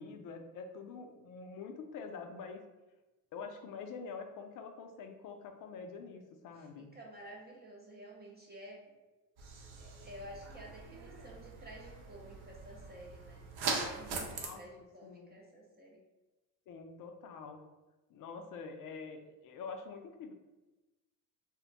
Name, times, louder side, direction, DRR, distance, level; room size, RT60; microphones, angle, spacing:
voice 1, 0.0-2.6 3.3-6.9 14.4-14.6 15.0-15.4 16.7-17.6 18.1-20.3, left 5 dB, 45° left, 5 dB, 0.4 m, -46 dB
voice 2, 6.5-9.0 9.8-13.4 13.8-16.0, equal, 20° right, -2 dB, 0.5 m, -51 dB
sound 1, 9.4-14.5, right 4 dB, 55° right, 0.8 m, -41 dB
2.2 x 2.1 x 3.8 m, 1.1 s
supercardioid pair, 85°, 47 cm